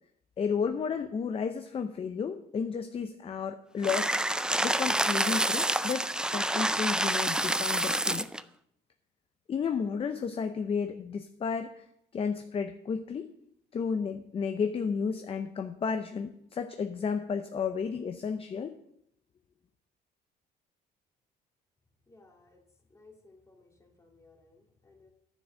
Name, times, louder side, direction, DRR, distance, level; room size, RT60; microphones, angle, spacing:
voice 1, 0.4-4.1 4.6-8.3 9.5-11.8 12.1-13.3 13.7-18.7, left 6 dB, 35° left, 8 dB, 0.7 m, -32 dB
sound 1, 3.8-8.4, right 1 dB, 5° right, 0.4 m, -28 dB
voice 2, 22.1-22.6 22.9-25.1, left 3 dB, 15° left, 1 dB, 2.4 m, -59 dB
9.9 x 7.2 x 6.3 m, 0.73 s
cardioid pair, 110°, 17 cm